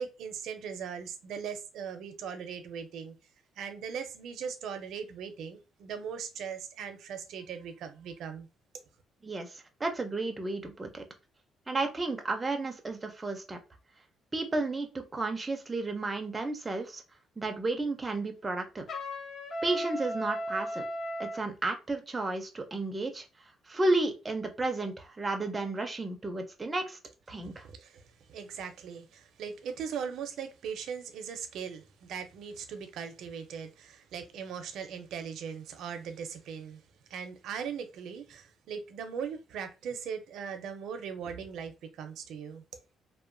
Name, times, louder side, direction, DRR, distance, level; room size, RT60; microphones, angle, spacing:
voice 1, 0.0-3.1 3.6-8.5 27.5-28.0 28.3-36.8 37.1-42.6, right 7 dB, 70° right, 0.5 m, -39 dB
voice 2, 9.2-11.0 11.7-13.6 14.3-17.0 17.4-18.9 19.6-20.8 21.2-23.2 23.7-27.0 27.3-27.7, right 2 dB, 15° right, 0.4 m, -32 dB
Trumpet, 18.9-21.4, equal, 45° left, 0.6 m, -36 dB
2.9 x 2.1 x 2.5 m
cardioid pair, 160°, 0 cm